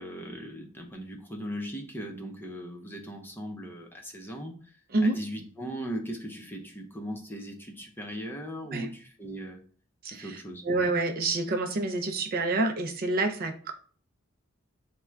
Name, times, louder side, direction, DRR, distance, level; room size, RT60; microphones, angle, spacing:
voice 1, 0.0-4.8 5.0-9.6 10.1-10.7, equal, 10° left, 2 dB, 0.6 m, -38 dB
voice 2, 10.0-13.7, right 2 dB, 45° right, 5 dB, 0.4 m, -28 dB
3.6 x 2.1 x 4.4 m, 0.43 s
head